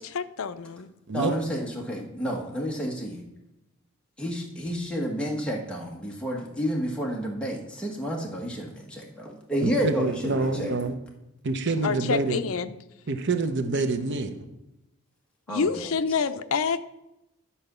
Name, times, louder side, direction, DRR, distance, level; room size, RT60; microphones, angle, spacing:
voice 1, 0.0-0.9 11.8-12.7 15.5-16.8, left 5 dB, 70° left, 11 dB, 0.5 m, -27 dB
voice 2, 1.1-3.2 4.2-10.7 15.5-15.9, equal, 5° left, -2 dB, 1.3 m, -30 dB
voice 3, 9.6-10.9 11.4-12.4 13.1-14.4, right 3 dB, 55° right, 7 dB, 0.8 m, -27 dB
11.0 x 4.3 x 6.8 m, 0.90 s
head